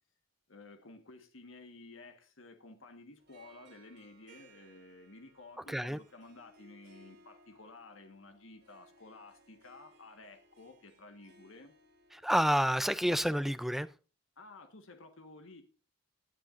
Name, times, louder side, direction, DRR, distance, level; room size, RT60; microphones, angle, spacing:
voice 1, 0.5-11.7 14.4-15.6, left 3 dB, 85° left, 1.5 m, -53 dB
Harp, 3.2-13.5, right 2 dB, 60° right, 3.1 m, -63 dB
voice 2, 5.7-6.0 12.1-13.9, equal, ahead, 0.5 m, -29 dB
17.0 x 10.5 x 2.6 m
head